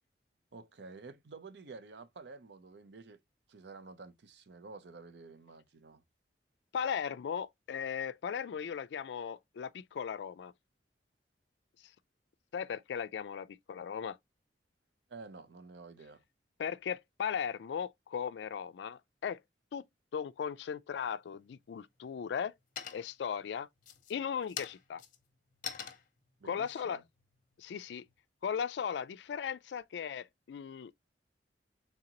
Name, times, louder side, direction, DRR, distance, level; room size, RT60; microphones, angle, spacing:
voice 1, 0.5-3.2 3.5-6.0 15.1-16.2 26.4-27.0, right 4 dB, 70° right, 0.6 m, -50 dB
voice 2, 6.7-10.5 12.5-14.2 16.6-19.4 19.7-19.8 20.1-22.5 22.9-23.7 24.1-25.0 26.4-27.0 27.6-28.1 28.4-30.9, left 7 dB, 70° left, 0.3 m, -37 dB
sound 1, 21.1-21.7 22.1-22.5 22.8-23.3 23.8-28.2, left 8 dB, 50° left, 0.7 m, -45 dB
3.8 x 3.5 x 2.8 m
head